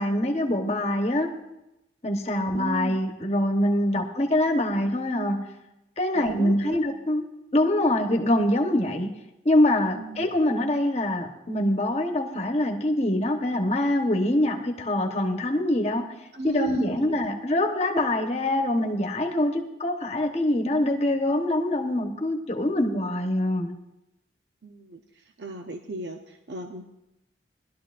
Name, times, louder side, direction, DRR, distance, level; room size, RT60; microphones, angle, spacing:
voice 1, 0.0-1.3 2.0-5.5 6.0-7.2 7.5-9.1 9.4-16.1 16.4-23.8, left 1 dB, 35° left, 3 dB, 1.1 m, -24 dB
voice 2, 2.3-3.0 4.0-4.1 6.1-6.8 10.0-10.3 16.3-17.2 24.6-25.0 25.4-26.8, right 2 dB, 70° right, 4 dB, 0.7 m, -36 dB
20.0 x 12.0 x 2.5 m, 0.92 s
head